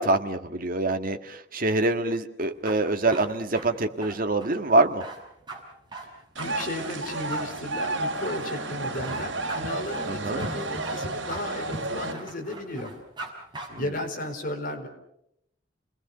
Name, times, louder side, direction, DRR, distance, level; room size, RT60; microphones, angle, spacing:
voice 1, 0.0-5.0 10.1-10.4, right 2 dB, 50° right, 7 dB, 1.8 m, -25 dB
sound 1, 2.4-13.3 13.5-13.7, right 2 dB, 25° right, 5.9 m, -41 dB
voice 2, 6.0-12.9 13.8-14.9, left 1 dB, 50° left, 4 dB, 4.6 m, -34 dB
sound 2, 6.4-12.1, right 2 dB, 75° right, 3.1 m, -32 dB
29.5 x 20.5 x 6.8 m, 0.79 s
head